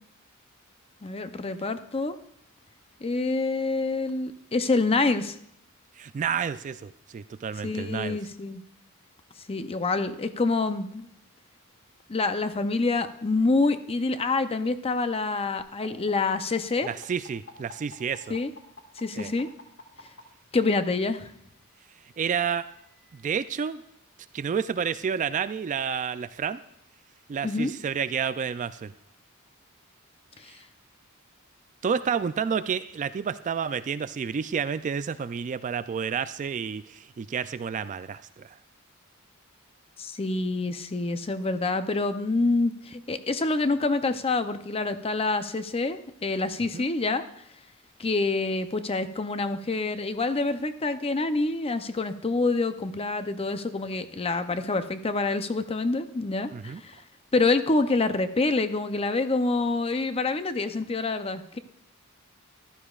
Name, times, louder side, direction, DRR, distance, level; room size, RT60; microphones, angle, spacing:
voice 1, 1.0-2.2 3.0-5.4 7.6-8.6 9.5-11.1 12.1-16.9 18.3-18.5 19.0-19.5 20.5-21.3 27.4-27.7 30.4-30.5 40.0-47.2 48.0-57.0 57.3-61.6, left 3 dB, 25° left, 10 dB, 0.6 m, -27 dB
voice 2, 6.0-8.2 16.8-18.4 19.2-19.3 22.2-22.7 23.1-23.8 24.3-26.6 27.3-28.9 30.5-30.6 31.8-38.6 46.7-46.8 56.5-56.8, right 7 dB, 35° right, 13 dB, 0.3 m, -30 dB
sound 1, 15.6-20.2 21.4-23.6, left 4 dB, 65° left, 1.8 m, -49 dB
14.5 x 12.0 x 2.4 m, 0.73 s
head